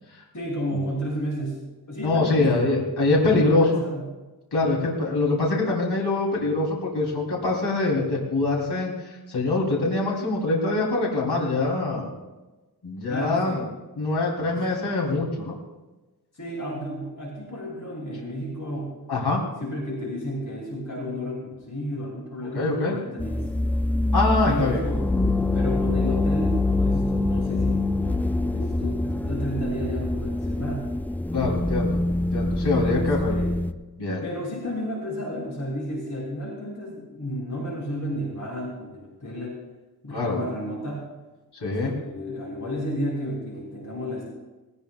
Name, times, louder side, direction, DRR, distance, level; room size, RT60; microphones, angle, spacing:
voice 1, 0.3-2.5 3.3-4.0 13.1-13.6 14.5-14.8 16.3-19.0 19.6-23.4 24.5-25.1 25.5-30.9 32.7-33.6 34.2-39.6 40.0-41.1 41.6-44.3, equal, 50° left, -4 dB, 6.2 m, -32 dB
voice 2, 2.0-3.7 4.5-12.1 12.8-13.6 14.0-15.6 19.1-19.4 22.5-23.0 24.1-24.8 31.3-32.0 32.3-33.3 34.0-34.2 40.1-40.4 41.6-41.9, left 2 dB, 75° left, -3 dB, 3.5 m, -24 dB
sound 1, 23.2-33.7, left 2 dB, 5° left, 0.3 m, -25 dB
19.5 x 18.5 x 2.4 m, 1.1 s
wide cardioid pair, 115°, 40 cm